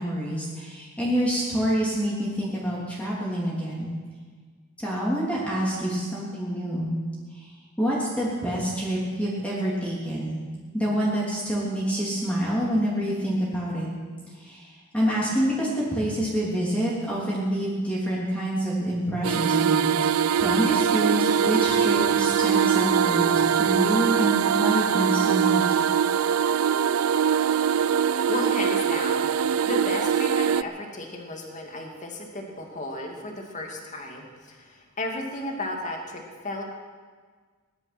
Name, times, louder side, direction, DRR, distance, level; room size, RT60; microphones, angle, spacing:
voice 1, 0.0-3.9 4.8-6.9 7.3-7.4 7.8-10.4 10.7-13.9 14.4-19.9 20.4-25.8, equal, 5° left, -7 dB, 3.3 m, -27 dB
sound 1, 19.2-30.6, right 8 dB, 80° right, 0.4 m, -22 dB
voice 2, 28.3-36.6, left 1 dB, 35° left, 1 dB, 2.4 m, -34 dB
19.0 x 12.0 x 6.1 m, 1.5 s
head